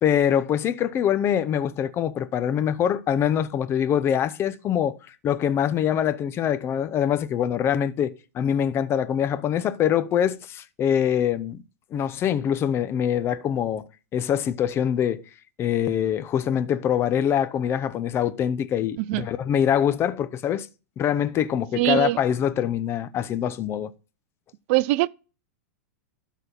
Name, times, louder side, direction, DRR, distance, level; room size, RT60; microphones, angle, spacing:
voice 1, 0.0-5.0 5.2-11.6 11.9-13.8 14.1-15.2 15.6-20.7 21.0-23.9, left 9 dB, 30° left, 0.7 m, -24 dB
voice 2, 21.7-22.2 24.7-25.1, right 19 dB, 50° right, 0.5 m, -21 dB
12.0 x 4.2 x 7.0 m
hypercardioid pair, 120°, 9 cm